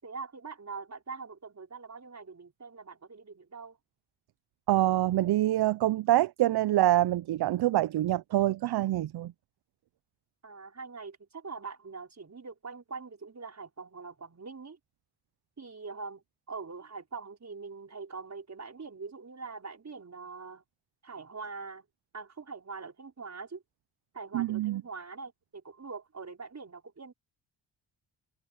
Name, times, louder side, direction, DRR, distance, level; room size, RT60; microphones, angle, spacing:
voice 1, 0.0-3.8 10.4-14.8 15.6-20.6 21.0-21.8 22.1-23.6 24.1-27.1, right 4 dB, 40° right, 5.2 m, -43 dB
voice 2, 4.7-9.3 24.3-24.8, right 14 dB, 65° right, 0.6 m, -26 dB
cardioid pair, 75°, 42 cm